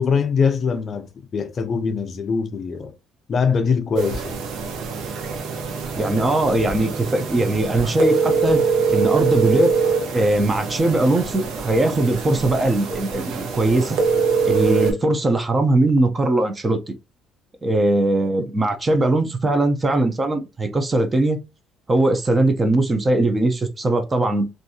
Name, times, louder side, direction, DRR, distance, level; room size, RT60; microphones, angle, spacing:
voice 1, 0.0-2.9 3.3-4.4, left 5 dB, 40° left, 0.4 m, -22 dB
sound 1, 4.0-14.9, right 5 dB, 75° right, 0.6 m, -23 dB
voice 2, 6.0-8.6 8.9-9.8 10.1-14.0 14.4-16.9 17.6-21.4 21.9-24.5, right 2 dB, 20° right, 0.5 m, -20 dB
2.6 x 2.3 x 2.6 m
cardioid pair, 115°, 0 cm